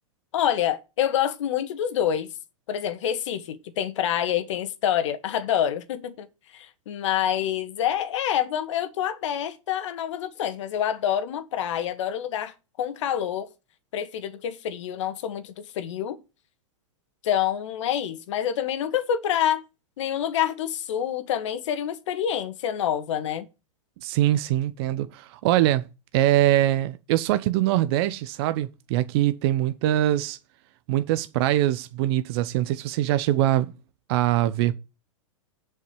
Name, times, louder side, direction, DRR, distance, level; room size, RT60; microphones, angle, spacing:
voice 1, 0.3-2.3 2.7-6.3 6.5-13.5 13.9-16.2 17.2-19.6 20.0-23.5, left 10 dB, 65° left, 1.9 m, -27 dB
voice 2, 24.0-25.8 26.1-30.4 30.9-33.7 34.1-34.7, right 14 dB, 50° right, 0.8 m, -23 dB
7.7 x 5.7 x 6.9 m
hypercardioid pair, 120°, 17 cm